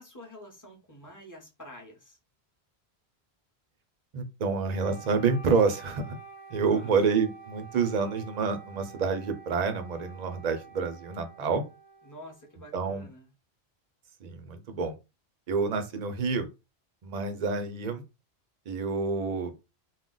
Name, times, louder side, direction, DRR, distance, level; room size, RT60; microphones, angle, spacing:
voice 1, 0.0-2.2 6.6-7.0 12.0-13.3, equal, 20° left, 0.8 m, -48 dB
voice 2, 4.1-6.2 6.5-11.6 12.7-13.1 14.2-15.0 15.5-16.5 17.0-18.0 18.7-19.5, right 5 dB, 50° right, 0.6 m, -28 dB
Wind instrument woodwind instrument, 4.7-12.7, right 5 dB, 50° left, 0.7 m, -49 dB
2.4 x 2.1 x 3.7 m
omnidirectional pair, 1.1 m